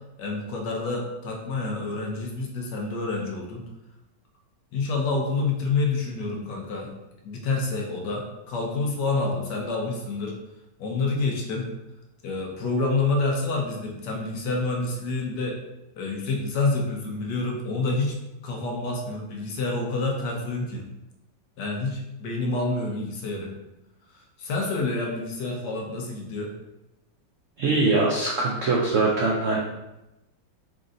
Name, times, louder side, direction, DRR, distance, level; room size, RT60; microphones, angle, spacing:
voice 1, 0.2-3.6 4.7-6.9 7.2-10.4 10.8-11.7 12.2-15.6 16.0-18.2 18.4-20.9 21.6-23.5 24.1-26.5, left 3 dB, 70° left, 0 dB, 1.4 m, -28 dB
voice 2, 27.6-29.6, right 3 dB, 80° right, -2 dB, 0.6 m, -22 dB
4.3 x 2.6 x 3.8 m, 0.95 s
omnidirectional pair, 2.0 m